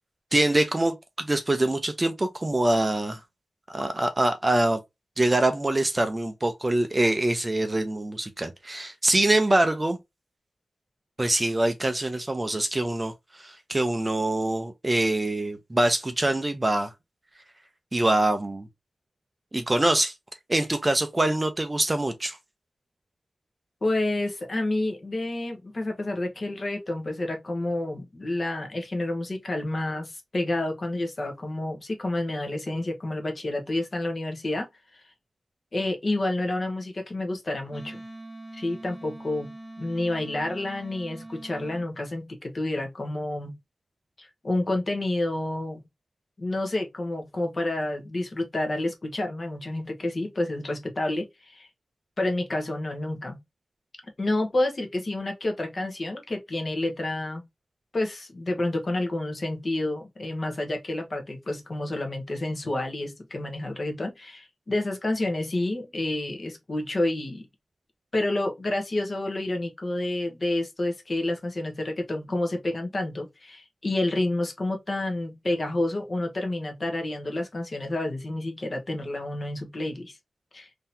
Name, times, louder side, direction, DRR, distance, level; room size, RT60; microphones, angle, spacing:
voice 1, 0.3-3.2 3.7-4.8 5.2-10.0 11.2-16.9 17.9-18.7 19.5-20.1 20.5-22.4, right 1 dB, 20° right, 0.5 m, -24 dB
voice 2, 23.8-34.7 34.9-35.0 35.7-38.0 38.5-43.6 44.2-45.8 46.4-51.7 52.2-53.4 54.2-57.5 57.9-67.4 68.1-80.2 80.5-80.7, left 2 dB, 35° left, 1.0 m, -29 dB
Wind instrument woodwind instrument, 37.7-41.9, right 1 dB, 5° left, 1.1 m, -43 dB
3.8 x 2.8 x 2.6 m
wide cardioid pair, 135°, 0 cm